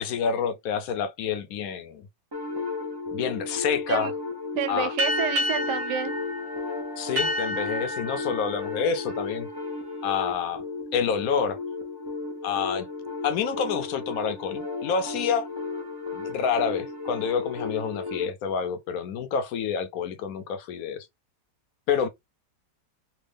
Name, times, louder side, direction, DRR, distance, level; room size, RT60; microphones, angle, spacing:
voice 1, 0.0-2.1 3.1-4.1 4.7-4.9 7.0-9.5 10.0-10.6 10.9-11.6 12.4-12.9 13.2-15.5 16.1-21.1 21.9-22.1, left 6 dB, 70° left, 0.9 m, -28 dB
sound 1, 2.3-18.3, left 3 dB, 35° right, 0.3 m, -34 dB
voice 2, 4.5-6.2, right 9 dB, 85° right, 1.3 m, -29 dB
sound 2, 5.0-10.1, left 1 dB, 55° right, 1.5 m, -31 dB
3.4 x 2.2 x 3.4 m
omnidirectional pair, 1.8 m